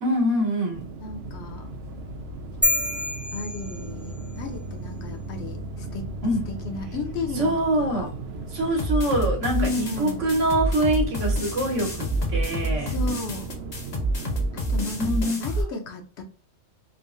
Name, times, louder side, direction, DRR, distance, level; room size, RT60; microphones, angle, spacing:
voice 1, 0.0-0.9 6.2-6.4 7.3-8.1 8.5-12.9 15.0-15.6, right 1 dB, 90° right, 1.3 m, -25 dB
sound 1, 0.7-15.1, right 2 dB, 65° right, 0.7 m, -37 dB
voice 2, 1.0-1.7 2.6-2.9 3.3-6.1 6.5-8.1 9.5-10.4 12.8-13.5 14.5-16.2, left 3 dB, 70° left, 0.9 m, -34 dB
sound 2, 2.6-4.4, left 2 dB, ahead, 0.4 m, -27 dB
sound 3, 8.8-15.6, right 1 dB, 40° left, 0.7 m, -27 dB
3.6 x 2.0 x 2.4 m
omnidirectional pair, 1.2 m